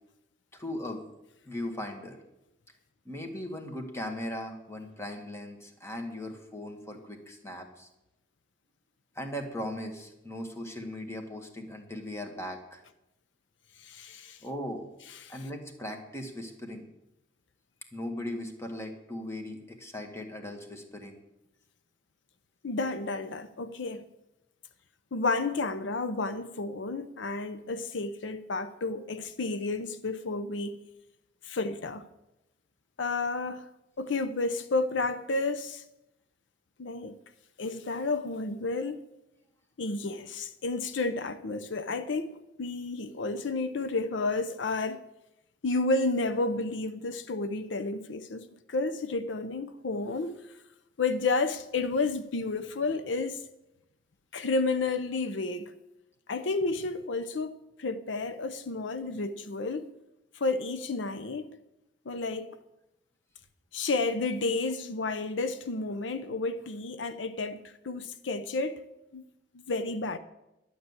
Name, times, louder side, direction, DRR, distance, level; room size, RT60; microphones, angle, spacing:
voice 1, 0.5-1.0 1.4-2.2 3.0-7.9 9.1-12.8 14.4-14.9 15.3-16.9 17.9-21.2, left 1 dB, 15° left, 1.7 m, -38 dB
voice 2, 13.8-14.4 15.2-15.4 22.6-24.0 25.1-30.8 31.4-32.1 33.0-33.7 34.0-35.8 36.8-37.2 37.6-39.0 39.8-45.0 45.6-50.4 51.0-53.4 54.3-55.7 56.3-59.9 60.3-61.5 62.1-62.6 63.7-68.8 69.1-69.2 69.7-70.2, left 3 dB, 80° left, 0.7 m, -31 dB
11.5 x 7.0 x 9.5 m
head